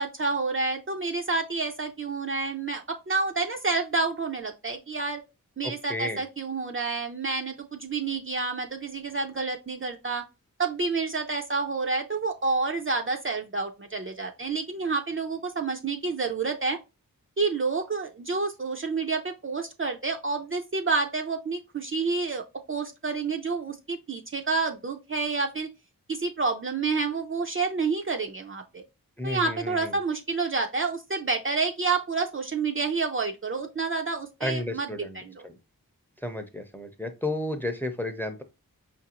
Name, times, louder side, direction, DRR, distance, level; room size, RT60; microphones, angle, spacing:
voice 1, 0.0-5.2 5.6-10.2 10.6-16.8 17.4-25.7 26.1-28.8 29.2-35.5, right 4 dB, 35° right, 3 dB, 0.5 m, -29 dB
voice 2, 5.6-6.2 29.2-29.9 34.4-35.6 36.2-38.4, left 1 dB, 5° left, 7 dB, 0.6 m, -32 dB
5.2 x 2.6 x 2.8 m, 0.27 s
wide cardioid pair, 65°, 35 cm